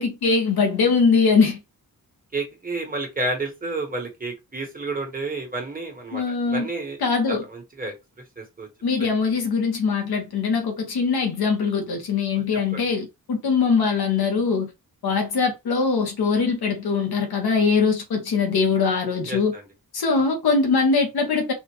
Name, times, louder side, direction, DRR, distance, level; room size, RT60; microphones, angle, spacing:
voice 1, 0.0-1.6 6.1-6.7 7.0-7.4 8.8-14.7 15.0-19.5 19.9-21.5, left 5 dB, 85° left, 1.3 m, -22 dB
voice 2, 2.3-7.0 7.3-7.9 8.4-8.7 9.0-9.1 12.7-12.8 19.3-19.6, right 2 dB, 25° right, 1.3 m, -30 dB
4.2 x 2.5 x 3.1 m
wide cardioid pair, 150°, 37 cm